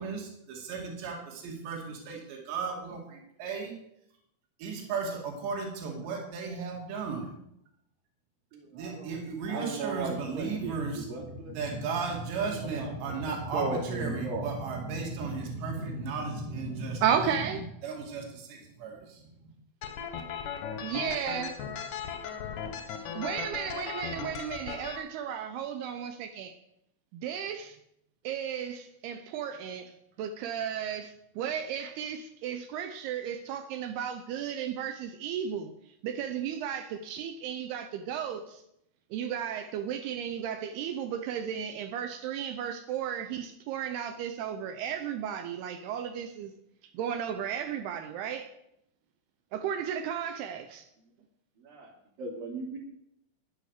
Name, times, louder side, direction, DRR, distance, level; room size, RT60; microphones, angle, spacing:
voice 1, 0.0-3.7 4.6-7.4 8.7-17.1 17.5-19.2, right 4 dB, 65° right, 0 dB, 4.5 m, -35 dB
voice 2, 8.5-9.1 9.5-11.5 12.4-14.5 51.6-51.9 52.2-52.8, right 3 dB, 50° right, -8 dB, 4.5 m, -37 dB
voice 3, 17.0-17.6 20.8-21.5 23.1-26.5 27.1-27.8 28.2-29.9 30.2-35.7 36.0-38.6 39.1-46.5 46.9-48.5 49.5-50.9, right 8 dB, 80° right, 8 dB, 2.3 m, -34 dB
sound 1, 19.8-25.0, left 7 dB, 75° left, 1.9 m, -37 dB
11.0 x 10.5 x 6.6 m, 0.78 s
omnidirectional pair, 5.5 m